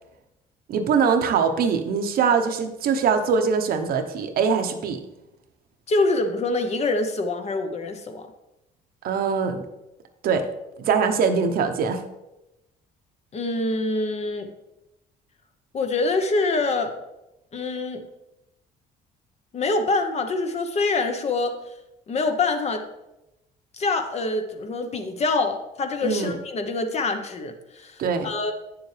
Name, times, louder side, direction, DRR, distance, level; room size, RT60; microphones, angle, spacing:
voice 1, 0.7-5.0 9.0-9.6 10.2-10.5 10.8-12.0 26.0-26.3 28.0-28.3, right 6 dB, 60° right, 7 dB, 0.9 m, -22 dB
voice 2, 5.9-8.3 13.3-14.5 15.7-16.9 17.5-18.0 19.5-21.5 22.1-22.8 23.7-28.5, left 3 dB, 40° left, 7 dB, 0.9 m, -25 dB
8.7 x 7.0 x 3.3 m, 0.93 s
cardioid pair, 110°, 17 cm